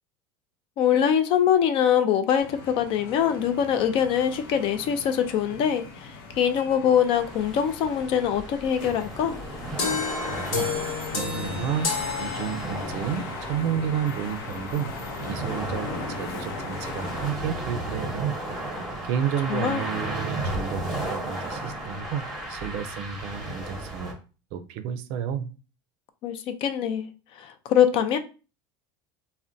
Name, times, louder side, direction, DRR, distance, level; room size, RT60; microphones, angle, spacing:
voice 1, 0.8-9.4 19.5-19.8 26.2-27.1 27.4-28.2, left 9 dB, 50° left, 0.4 m, -23 dB
sound 1, 2.4-17.3, left 3 dB, 85° left, 0.7 m, -38 dB
sound 2, 7.1-24.1, right 1 dB, ahead, 0.8 m, -35 dB
sound 3, 9.8-13.1, left 5 dB, 65° left, 1.0 m, -30 dB
voice 2, 10.3-10.7 11.1-14.9 15.2-18.3 18.6-18.8 19.0-20.8 21.1-24.2 24.5-25.5, right 8 dB, 60° right, 0.4 m, -31 dB
3.6 x 2.1 x 2.6 m
supercardioid pair, 135°, 12 cm